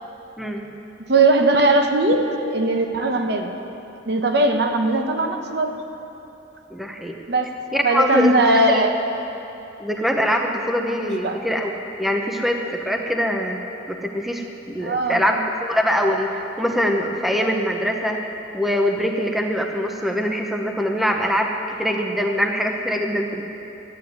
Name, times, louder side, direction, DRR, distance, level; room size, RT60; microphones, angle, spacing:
voice 1, 1.1-3.5 4.1-5.7 7.3-7.5 7.8-8.9 11.2-11.4 14.8-15.2, right 2 dB, 60° right, 4 dB, 1.1 m, -19 dB
voice 2, 6.7-7.2 7.7-8.3 8.7-8.8 9.8-11.7 12.0-13.6 13.9-18.2 18.5-23.4, equal, ahead, 2 dB, 0.8 m, -23 dB
13.0 x 9.4 x 9.4 m, 2.9 s
head